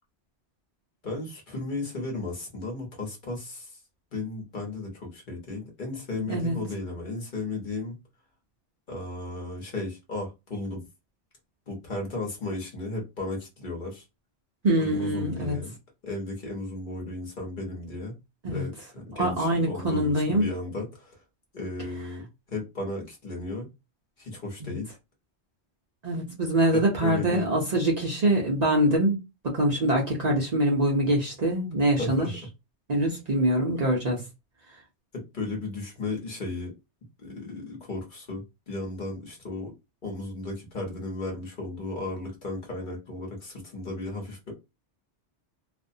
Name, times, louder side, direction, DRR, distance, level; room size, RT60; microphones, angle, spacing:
voice 1, 1.0-3.8 4.1-8.0 8.9-10.8 11.7-14.0 14.7-15.7 16.0-18.2 18.5-21.2 21.5-23.7 24.2-24.9 26.7-27.5 32.0-32.3 35.1-36.7 37.2-39.7 40.0-44.5, left 2 dB, 50° left, 0.9 m, -35 dB
voice 2, 14.6-15.6 18.4-18.6 19.1-20.5 24.6-24.7 26.0-29.2 29.4-32.3 32.9-34.2, right 1 dB, 45° right, 0.6 m, -24 dB
2.4 x 2.0 x 2.6 m
omnidirectional pair, 1.2 m